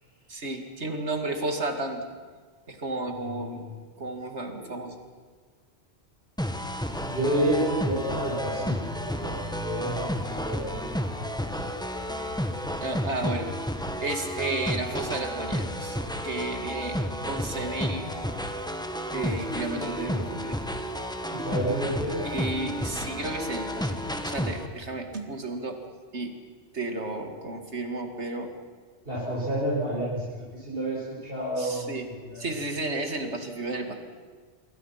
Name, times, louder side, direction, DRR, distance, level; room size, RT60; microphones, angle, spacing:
voice 1, 0.3-2.1 2.7-3.7 4.0-4.9 12.8-13.5 14.0-16.0 16.2-17.0 17.2-18.1 19.1-20.6 22.2-25.8 26.1-26.4 26.7-28.5 31.6-32.1 32.4-33.9, right 2 dB, 70° right, 5 dB, 2.7 m, -32 dB
voice 2, 3.2-3.6 4.5-4.8 7.1-10.8 11.1-11.7 21.3-22.2 29.1-30.2 30.5-32.5, right 1 dB, 50° right, -6 dB, 5.8 m, -30 dB
sound 1, 6.4-24.7, equal, 5° left, 1.4 m, -31 dB
26.5 x 23.0 x 5.9 m, 1.5 s
omnidirectional pair, 1.2 m